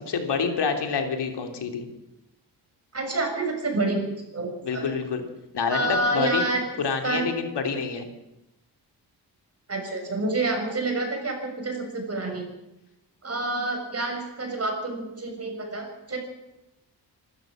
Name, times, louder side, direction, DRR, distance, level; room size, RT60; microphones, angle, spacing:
voice 1, 0.1-1.9 4.6-5.2 5.5-6.4 6.8-8.0, left 5 dB, 75° left, 5 dB, 3.2 m, -27 dB
voice 2, 2.9-4.0 4.3-4.9 5.7-6.6 7.0-7.2 9.7-12.5 13.2-16.2, right 2 dB, 35° right, 3 dB, 6.8 m, -28 dB
26.5 x 13.5 x 7.6 m, 0.92 s
cardioid pair, 95°, 41 cm